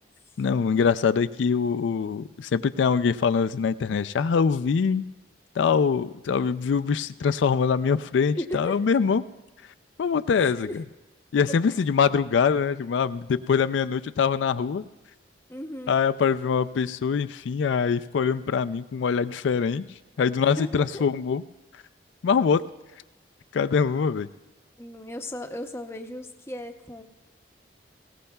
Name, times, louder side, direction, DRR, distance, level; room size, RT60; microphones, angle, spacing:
voice 1, 0.4-5.0 5.6-9.2 10.0-10.8 11.3-14.8 15.9-19.9 20.2-21.4 22.2-22.6 23.5-24.3, left 6 dB, 80° left, 12 dB, 0.4 m, -23 dB
voice 2, 8.4-8.8 10.4-10.8 11.7-11.8 15.5-15.9 20.6-21.0 24.8-27.0, left 1 dB, 15° left, 5 dB, 0.7 m, -36 dB
20.0 x 17.5 x 2.3 m, 1.1 s
head